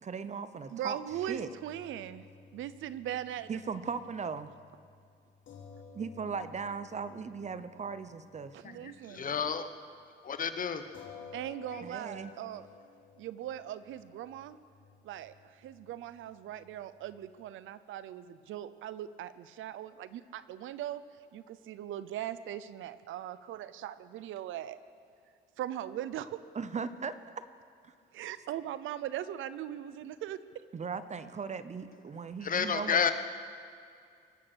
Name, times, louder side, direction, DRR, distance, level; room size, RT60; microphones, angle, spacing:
voice 1, 0.0-1.0 1.3-1.5 3.5-4.5 5.9-8.5 11.8-12.3 26.5-27.4 27.8-27.9 30.7-33.1, right 5 dB, 35° right, 13 dB, 0.8 m, -38 dB
voice 2, 0.7-2.2 2.5-3.6 8.5-9.3 11.3-12.7 13.2-14.6 15.0-21.0 21.3-24.8 25.6-26.4 28.1-30.4, right 11 dB, 80° right, 15 dB, 0.6 m, -40 dB
sound 1, 1.1-9.6 9.9-10.0 10.9-17.5, left 5 dB, 75° left, 3.0 m, -55 dB
voice 3, 8.6-9.7 10.2-10.8 11.7-11.8 32.4-33.1, left 6 dB, 45° left, 10 dB, 1.0 m, -31 dB
23.5 x 8.6 x 6.3 m, 2.4 s
cardioid pair, 90°, 20 cm